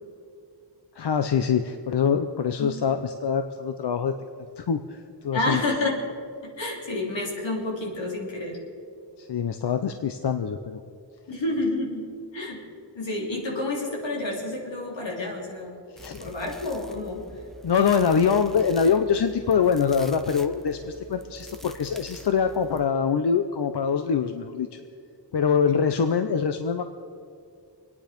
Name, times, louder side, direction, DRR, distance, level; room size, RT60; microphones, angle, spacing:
voice 1, 1.0-4.1 4.6-5.6 9.2-10.8 15.9-16.2 17.6-24.7 25.3-26.8, left 6 dB, 65° left, 8 dB, 0.7 m, -24 dB
voice 2, 5.3-6.0 6.4-8.6 11.3-12.6 12.9-15.8 16.2-17.2, left 2 dB, 85° left, -1 dB, 3.5 m, -29 dB
sound 1, 16.0-22.9, equal, ahead, 0.7 m, -45 dB
25.5 x 9.8 x 5.2 m, 2.4 s
wide cardioid pair, 125°, 44 cm